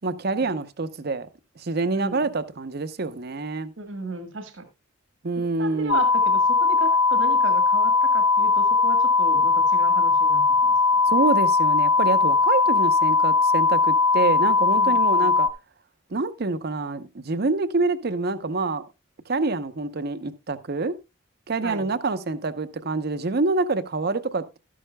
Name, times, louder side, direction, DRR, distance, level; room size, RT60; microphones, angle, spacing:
voice 1, 0.0-1.3 1.6-3.7 5.2-6.0 11.1-15.5 16.1-18.8 19.3-21.0 21.5-24.6, right 3 dB, 55° right, 0.7 m, -26 dB
voice 2, 1.9-2.3 3.8-4.7 5.4-10.8 11.1-11.3 14.8-15.3 21.6-21.9, right 2 dB, 75° right, 1.5 m, -35 dB
sound 1, 5.9-15.5, left 4 dB, 70° left, 0.6 m, -19 dB
12.5 x 11.0 x 2.2 m
head